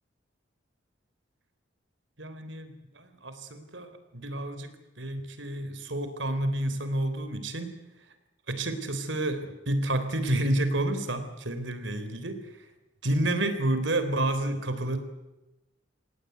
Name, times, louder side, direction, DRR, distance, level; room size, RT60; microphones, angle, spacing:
voice 1, 2.2-7.7 8.5-12.7 13.0-15.0, right 1 dB, 75° right, 9 dB, 3.6 m, -30 dB
26.5 x 17.5 x 9.5 m, 0.99 s
head